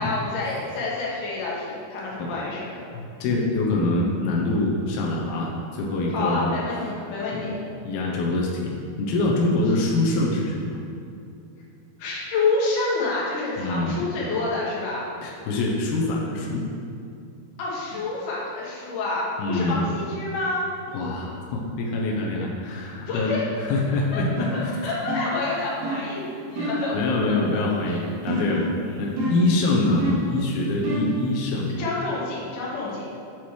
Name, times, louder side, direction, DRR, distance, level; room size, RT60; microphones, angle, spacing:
voice 1, 0.0-2.8 6.1-7.6 12.0-15.1 17.6-20.7 23.1-23.4 24.1-24.2 24.5-27.0 27.3-28.0 28.4-28.5 28.8-29.1 31.8-33.1, left 3 dB, 65° left, -6 dB, 2.8 m, -28 dB
voice 2, 2.9-6.5 7.3-7.4 7.9-10.8 13.6-14.0 15.2-16.7 19.4-19.9 20.9-23.3 23.6-24.9 26.9-28.7 29.0-31.7, left 2 dB, 90° left, -2 dB, 2.8 m, -25 dB
sound 1, 24.4-24.7 25.1-25.4 25.8-26.1 26.6-26.9 28.3-28.7 29.2-29.5 30.0-30.3 30.8-31.2, equal, 85° right, 3.4 m, -28 dB
9.0 x 4.3 x 4.7 m, 2.5 s
omnidirectional pair, 4.3 m